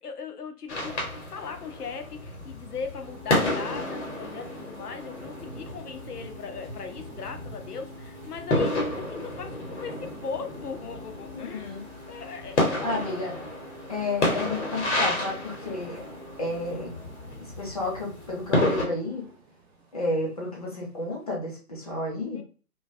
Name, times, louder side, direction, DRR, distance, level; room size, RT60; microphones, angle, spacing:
voice 1, 0.0-1.0 1.3-11.8 12.1-13.4 22.3-22.4, left 5 dB, 85° left, 6 dB, 0.6 m, -39 dB
sound 1, 0.7-18.9, left 1 dB, 50° left, 0.9 m, -31 dB
sound 2, 3.0-21.3, equal, 45° right, 0.5 m, -48 dB
voice 2, 11.3-11.8 12.8-13.3 13.9-16.0 16.4-16.9 17.6-19.2 19.9-22.4, left 2 dB, 25° left, -3 dB, 0.6 m, -31 dB
2.4 x 2.2 x 2.4 m, 0.38 s
figure-of-eight pair, 140°, 45 cm